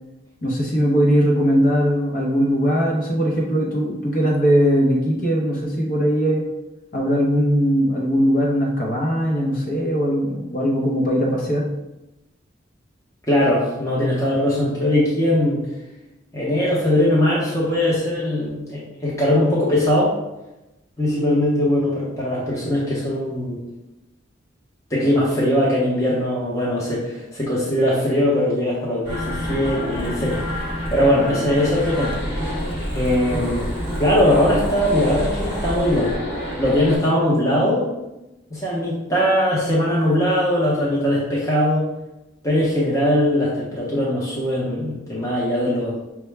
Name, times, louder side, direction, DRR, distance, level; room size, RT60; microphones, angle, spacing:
voice 1, 0.4-6.5 6.9-11.7, equal, 45° left, -2 dB, 0.7 m, -20 dB
voice 2, 13.3-15.6 16.3-20.1 21.0-23.6 24.9-30.4 30.9-32.2 32.9-33.7 34.0-36.1 36.6-37.9 38.5-41.8 42.4-46.0, left 1 dB, 15° left, -7 dB, 0.8 m, -20 dB
sound 1, 29.1-37.0, equal, 65° left, 1.4 m, -27 dB
5.9 x 2.1 x 3.3 m, 0.98 s
head